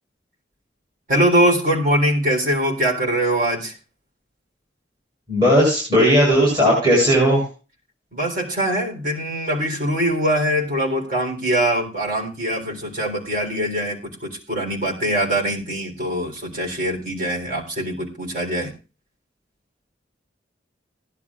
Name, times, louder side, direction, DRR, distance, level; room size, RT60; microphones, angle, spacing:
voice 1, 1.1-3.8 8.1-18.7, right 1 dB, 45° right, 0 dB, 3.7 m, -22 dB
voice 2, 5.3-7.4, equal, 25° right, -5 dB, 6.7 m, -16 dB
18.5 x 11.0 x 2.5 m, 0.34 s
head